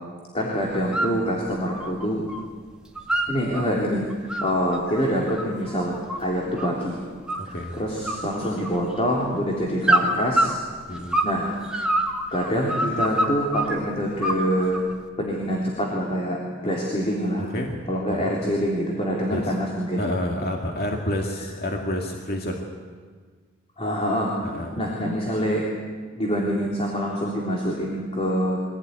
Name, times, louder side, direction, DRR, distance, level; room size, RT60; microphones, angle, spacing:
voice 1, 0.3-2.3 3.3-7.0 7.5-10.6 11.2-11.5 12.3-14.8 15.2-17.4 17.9-20.0 23.8-24.3 24.8-25.6 26.1-28.6, equal, 30° left, -3 dB, 3.4 m, -25 dB
sound 1, 0.7-1.2 1.5-2.4 2.7-3.6 4.1-6.8 7.3-7.7 8.0-9.0 9.8-11.4 11.7-13.7 14.2-14.9, right 1 dB, 5° right, 2.0 m, -25 dB
voice 2, 7.4-7.8 10.9-11.2 17.4-17.8 18.1-18.3 19.3-19.5 20.0-22.6 24.4-24.7, left 1 dB, 50° left, 1 dB, 2.2 m, -29 dB
24.0 x 17.0 x 9.6 m, 1.5 s
head